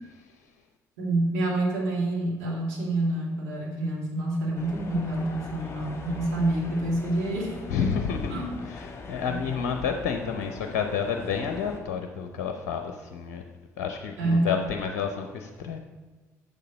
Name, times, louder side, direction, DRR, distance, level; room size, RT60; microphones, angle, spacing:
voice 1, 1.0-8.0 8.3-8.5 9.3-9.4 14.2-14.5, right 1 dB, 75° right, -4 dB, 2.2 m, -27 dB
sound 1, 4.5-11.8, left 3 dB, 35° left, 1.7 m, -41 dB
voice 2, 7.7-13.4 13.8-15.8, left 6 dB, 65° left, 5 dB, 0.6 m, -30 dB
7.1 x 6.7 x 5.1 m, 1.3 s
figure-of-eight pair, 50°, 8 cm